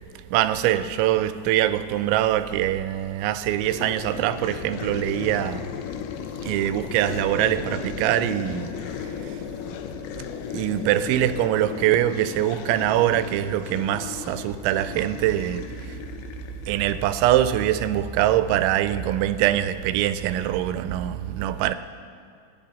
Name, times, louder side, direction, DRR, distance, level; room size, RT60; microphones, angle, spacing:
voice 1, 0.3-5.7 6.4-8.7 10.5-15.6 16.7-21.7, right 12 dB, 90° right, 3.0 m, -23 dB
sound 1, 3.5-17.4, left 8 dB, 80° left, 2.3 m, -36 dB
29.0 x 10.5 x 4.2 m
omnidirectional pair, 5.2 m